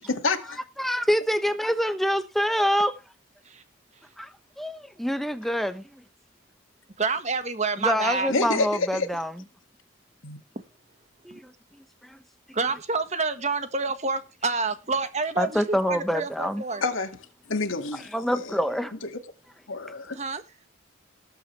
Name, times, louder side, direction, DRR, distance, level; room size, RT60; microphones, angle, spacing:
voice 1, 0.1-0.6 8.3-9.1 10.2-10.4 16.8-17.1 17.5-18.6 19.1-19.2 19.7-20.2, left 3 dB, 80° left, 2.0 m, -28 dB
voice 2, 0.8-2.9 4.2-4.3 4.6-5.8 7.8-9.3 11.3-11.5 12.1-12.2 15.4-16.6 18.1-19.0, equal, ahead, 0.8 m, -26 dB
voice 3, 7.0-8.3 11.3-11.4 12.5-16.8 20.1-20.4, right 4 dB, 35° right, 1.5 m, -28 dB
19.0 x 7.9 x 3.3 m
head